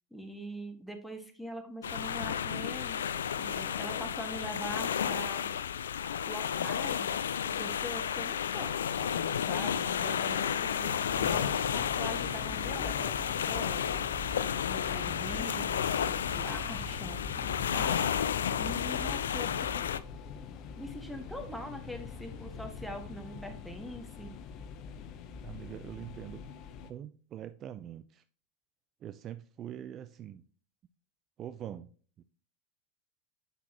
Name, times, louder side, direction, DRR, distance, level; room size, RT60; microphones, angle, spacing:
voice 1, 0.1-3.1 3.4-5.4 6.2-7.2 7.4-13.2 13.5-14.1 14.5-18.3 18.6-19.8 20.4-20.5 20.8-24.3, equal, ahead, 1.7 m, -43 dB
sound 1, 1.8-20.0, left 8 dB, 80° left, 0.4 m, -32 dB
sound 2, 11.1-26.9, left 5 dB, 45° left, 0.9 m, -43 dB
voice 2, 11.1-11.6 15.2-15.5 25.4-26.5 26.8-28.2 29.0-30.4 31.4-31.9 32.2-32.3, right 11 dB, 40° right, 0.4 m, -44 dB
8.2 x 5.8 x 3.0 m
hypercardioid pair, 90°, 0 cm